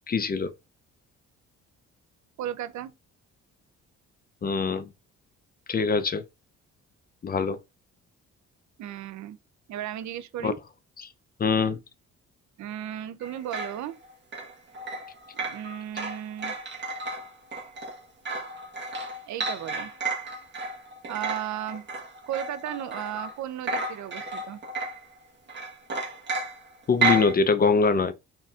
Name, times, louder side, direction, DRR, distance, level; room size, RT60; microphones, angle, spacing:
voice 1, 0.1-0.5 4.4-4.9 5.7-6.2 7.2-7.6 10.4-10.5 11.4-11.8 26.9-28.1, left 4 dB, 30° left, 0.5 m, -23 dB
voice 2, 2.4-2.9 8.8-9.4 9.7-10.6 12.6-14.0 15.3-16.6 19.3-19.9 21.1-21.9 22.3-24.6, right 11 dB, 70° right, 0.6 m, -35 dB
sound 1, 13.2-23.4 23.6-25.1 25.5-27.3, right 2 dB, 35° right, 1.3 m, -32 dB
4.1 x 3.8 x 2.4 m
cardioid pair, 90°, 30 cm